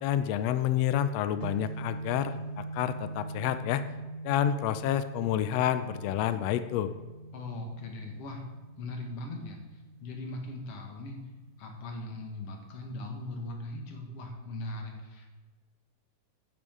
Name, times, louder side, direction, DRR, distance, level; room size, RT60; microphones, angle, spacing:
voice 1, 0.0-3.8 4.2-6.9, left 10 dB, 90° left, 11 dB, 1.4 m, -29 dB
sound 1, 1.4-13.5, right 2 dB, 85° right, 2.3 m, -43 dB
voice 2, 7.3-8.4 8.8-11.2 11.6-15.3, left 2 dB, 55° left, 2 dB, 2.3 m, -39 dB
10.5 x 9.8 x 3.7 m, 1.3 s
omnidirectional pair, 3.5 m